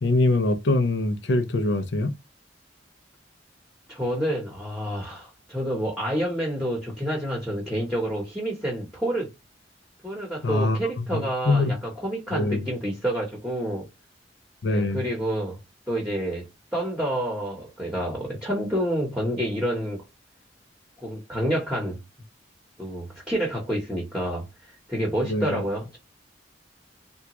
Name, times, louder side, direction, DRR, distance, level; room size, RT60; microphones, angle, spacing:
voice 1, 0.0-2.1 10.4-11.7 12.3-12.7 14.6-15.0 25.3-25.6, left 2 dB, 70° left, 0.6 m, -24 dB
voice 2, 3.9-9.3 10.0-13.9 14.7-15.6 15.9-20.0 21.0-22.0 22.8-26.0, right 1 dB, 5° right, 1.0 m, -28 dB
3.5 x 2.3 x 2.9 m
head